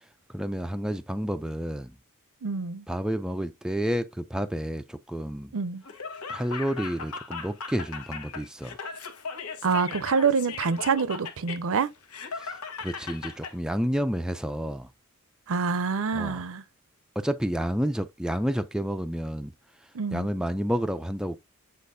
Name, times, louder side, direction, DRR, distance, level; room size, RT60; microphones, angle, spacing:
voice 1, 0.3-2.0 2.9-5.5 6.3-8.8 12.4-14.9 16.1-16.4 17.2-19.5 20.1-21.4, equal, 5° right, 0.4 m, -30 dB
voice 2, 2.4-2.9 5.5-5.8 9.6-11.9 15.5-16.6 19.9-20.3, right 5 dB, 65° right, 0.6 m, -26 dB
Laughter, 5.8-13.5, left 5 dB, 75° left, 1.2 m, -38 dB
8.4 x 4.2 x 2.6 m
head